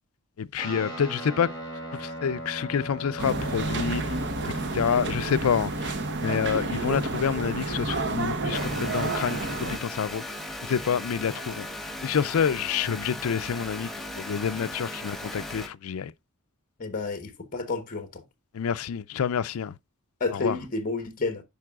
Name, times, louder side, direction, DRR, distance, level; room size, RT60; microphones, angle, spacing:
voice 1, 0.4-1.5 2.0-4.2 4.7-5.9 6.2-10.2 10.6-11.7 12.0-13.9 14.1-16.1 18.5-19.7 20.3-20.6, left 7 dB, 70° left, 0.4 m, -28 dB
Guitar, 0.6-8.2, right 1 dB, 20° left, 5.7 m, -41 dB
sound 1, 3.2-9.8, right 2 dB, 55° right, 1.0 m, -30 dB
sound 2, 8.5-15.7, left 1 dB, ahead, 1.0 m, -37 dB
voice 2, 16.8-18.2 20.2-21.4, left 3 dB, 40° left, 1.1 m, -30 dB
10.5 x 5.3 x 2.3 m
head